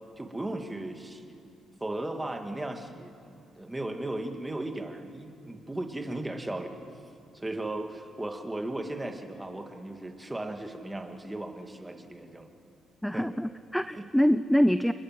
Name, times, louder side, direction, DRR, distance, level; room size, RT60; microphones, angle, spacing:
voice 1, 0.2-1.4 1.8-6.8 7.3-12.5 13.1-13.3 14.0-14.1, right 1 dB, 15° right, 4 dB, 2.3 m, -36 dB
voice 2, 13.0-14.9, equal, 5° left, 13 dB, 0.5 m, -25 dB
28.0 x 21.5 x 7.7 m, 2.6 s
cardioid pair, 90°, 0 cm